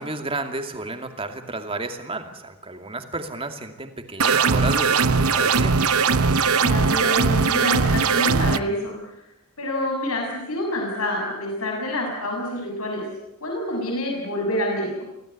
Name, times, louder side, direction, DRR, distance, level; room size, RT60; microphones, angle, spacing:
voice 1, 0.0-5.8, right 2 dB, 25° right, 6 dB, 2.5 m, -32 dB
sound 1, 4.2-8.6, right 5 dB, 80° right, 1.0 m, -19 dB
voice 2, 6.6-9.0 9.6-13.0 13.4-14.9, left 1 dB, 80° left, 1 dB, 6.6 m, -27 dB
25.0 x 17.0 x 9.6 m, 0.89 s
head